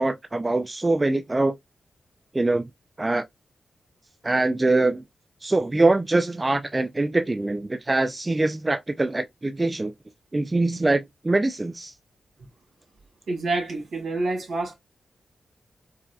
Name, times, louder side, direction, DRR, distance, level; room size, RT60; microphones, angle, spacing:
voice 1, 0.0-1.5 2.3-2.6 3.0-3.3 4.2-5.0 5.4-9.9 10.3-11.9, right 2 dB, 25° right, 0.4 m, -23 dB
voice 2, 13.3-14.7, right 2 dB, 70° right, 2.2 m, -27 dB
4.8 x 2.6 x 2.3 m
cardioid pair, 60°, 0 cm